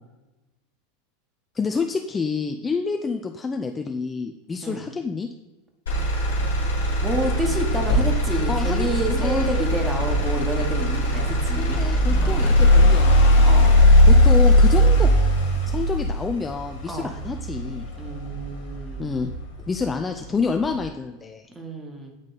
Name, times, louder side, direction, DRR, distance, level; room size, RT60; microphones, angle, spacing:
voice 1, 1.5-5.3 8.5-9.6 11.6-13.4 14.1-15.1 15.7-17.9 19.0-19.3 19.6-21.5, left 4 dB, 20° left, 5 dB, 0.4 m, -28 dB
Motor vehicle (road), 5.9-19.9 20.3-20.8, left 1 dB, 75° left, 1.6 m, -19 dB
voice 2, 7.0-11.9 12.2-12.5 13.4-13.8 16.8-17.1 18.0-19.1 21.5-22.2, right 1 dB, 10° right, 2 dB, 1.3 m, -29 dB
8.9 x 3.6 x 4.0 m, 1.1 s
figure-of-eight pair, 85°, 0 cm